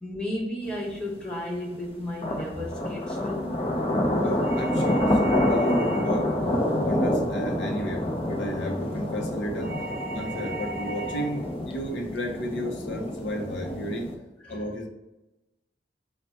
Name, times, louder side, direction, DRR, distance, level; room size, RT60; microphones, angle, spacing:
voice 1, 0.0-3.7 14.4-14.6, left 1 dB, 5° left, -4 dB, 0.9 m, -34 dB
sound 1, 0.7-0.8 2.2-14.1, left 1 dB, 30° left, 0.5 m, -27 dB
voice 2, 4.2-6.3 6.8-9.8 10.1-14.1 14.5-14.9, equal, 80° left, 1 dB, 0.6 m, -33 dB
sound 2, 4.4-6.3 9.6-11.4, right 1 dB, 55° right, 0.7 m, -36 dB
4.3 x 2.1 x 4.0 m, 1.0 s
head